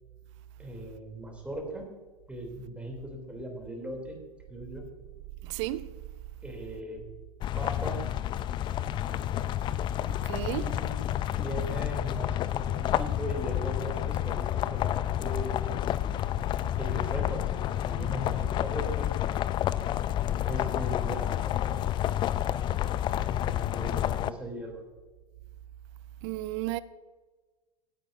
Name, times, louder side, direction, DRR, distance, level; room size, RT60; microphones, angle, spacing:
voice 1, 0.6-1.9 2.3-4.2 4.5-4.9 6.4-7.0 7.5-8.0 10.5-11.0 11.3-15.6 16.8-19.2 20.4-21.9 23.2-24.8, equal, 5° right, 3.0 m, -39 dB
voice 2, 5.4-5.9 10.1-10.8 26.2-26.8, right 16 dB, 50° right, 0.5 m, -33 dB
sound 1, 7.4-24.3, left 12 dB, 25° left, 0.4 m, -30 dB
17.5 x 9.5 x 2.6 m
figure-of-eight pair, 95°, 20 cm